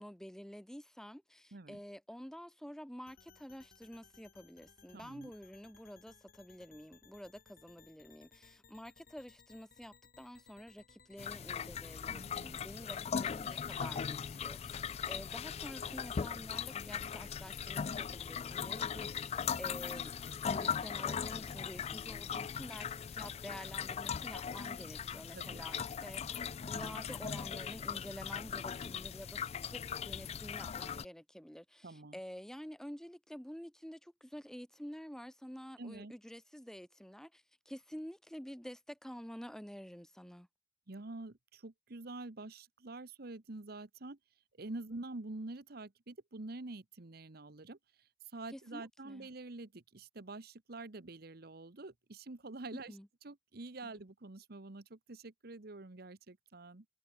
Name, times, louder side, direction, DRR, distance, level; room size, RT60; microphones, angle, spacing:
voice 1, 0.0-20.1 20.4-40.5 48.5-49.3 52.9-53.1 53.8-53.9, equal, 5° left, 0.9 m, -49 dB
sound 1, 3.1-17.9, left 5 dB, 55° left, 4.0 m, -63 dB
voice 2, 4.9-5.3 12.1-12.8 25.3-25.7 31.8-32.2 35.8-36.1 40.9-44.2 44.6-47.8 48.3-56.8, right 2 dB, 60° right, 1.2 m, -47 dB
sound 2, 11.2-31.0, left 7 dB, 35° left, 0.3 m, -39 dB
head